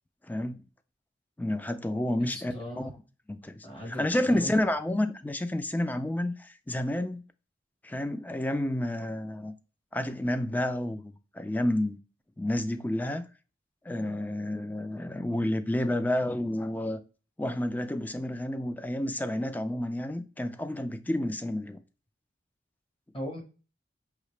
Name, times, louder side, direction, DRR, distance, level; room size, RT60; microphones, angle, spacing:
voice 1, 0.3-0.6 1.4-2.9 3.3-7.2 7.8-9.5 9.9-12.0 12.4-13.2 13.9-17.0 17.4-21.8, left 1 dB, 10° left, 0.3 m, -30 dB
voice 2, 2.2-2.9 3.6-4.6 23.1-23.4, equal, 30° left, 1.3 m, -38 dB
4.9 x 2.8 x 3.1 m
head